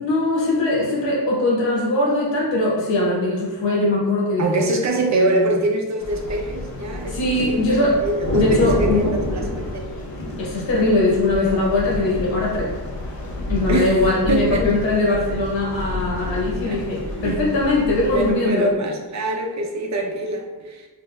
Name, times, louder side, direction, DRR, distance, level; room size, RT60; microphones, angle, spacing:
voice 1, 0.0-4.7 5.1-5.5 7.1-8.0 8.3-9.2 10.4-12.7 13.5-18.7, left 2 dB, 85° left, -5 dB, 1.3 m, -21 dB
voice 2, 4.4-7.2 7.5-9.9 13.7-14.6 16.7-16.8 17.2-17.4 18.1-20.9, right 2 dB, 40° right, 2 dB, 0.5 m, -24 dB
sound 1, 6.0-18.3, left 1 dB, 55° left, 0.8 m, -29 dB
4.4 x 2.6 x 2.2 m, 1.3 s
cardioid pair, 105°, 43 cm